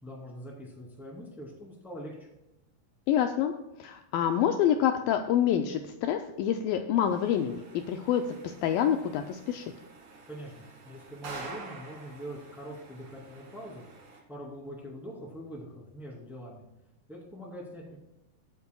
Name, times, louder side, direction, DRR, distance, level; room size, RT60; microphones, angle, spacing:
voice 1, 0.0-2.3 10.2-13.8 14.3-16.6 17.1-18.0, equal, ahead, -3 dB, 1.9 m, -43 dB
voice 2, 3.1-3.5 3.8-9.7, left 9 dB, 90° left, 6 dB, 2.0 m, -27 dB
sound 1, 7.1-14.2, right 3 dB, 55° right, 3.2 m, -48 dB
21.5 x 8.3 x 2.3 m, 0.93 s
omnidirectional pair, 4.6 m